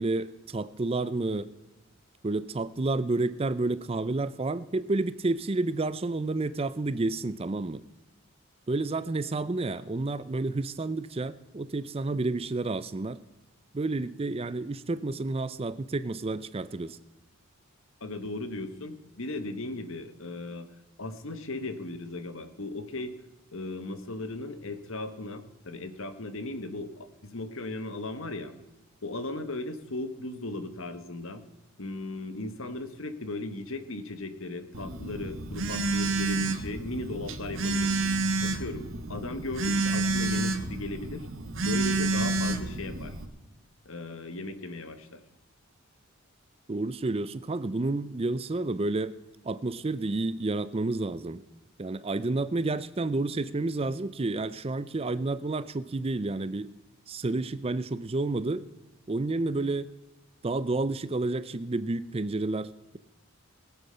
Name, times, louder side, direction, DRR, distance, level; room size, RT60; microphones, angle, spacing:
voice 1, 0.0-1.5 2.2-7.8 8.7-13.2 13.7-17.0 46.7-49.1 49.4-51.4 51.8-56.7 57.1-58.6 59.1-59.9 60.4-63.0, right 2 dB, 25° right, 15 dB, 0.4 m, -30 dB
voice 2, 18.0-20.7 21.0-23.1 23.5-28.5 29.0-31.4 31.8-37.9 38.4-41.3 41.6-43.1 43.8-45.2, left 2 dB, 65° left, 10 dB, 1.3 m, -37 dB
Telephone, 34.7-43.3, right 2 dB, 60° right, 1.3 m, -29 dB
20.5 x 8.2 x 5.6 m, 1.0 s
head